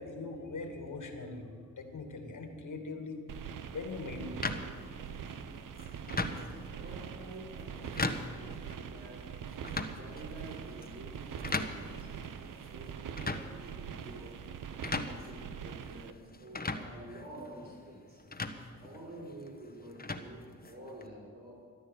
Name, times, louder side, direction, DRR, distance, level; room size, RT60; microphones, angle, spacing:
voice 1, 0.0-1.5 1.8-3.2 3.7-4.4, left 3 dB, 60° left, 5 dB, 2.5 m, -41 dB
sound 1, 3.3-16.1, right 7 dB, 65° right, 0.9 m, -43 dB
sound 2, 4.4-21.1, left 3 dB, 25° left, 1.4 m, -40 dB
voice 2, 6.3-9.4 10.0-12.1 12.6-14.4 14.7-18.2 18.8-21.6, right 1 dB, 45° right, -7 dB, 5.1 m, -49 dB
14.0 x 10.5 x 8.6 m, 2.1 s
supercardioid pair, 50°, 34 cm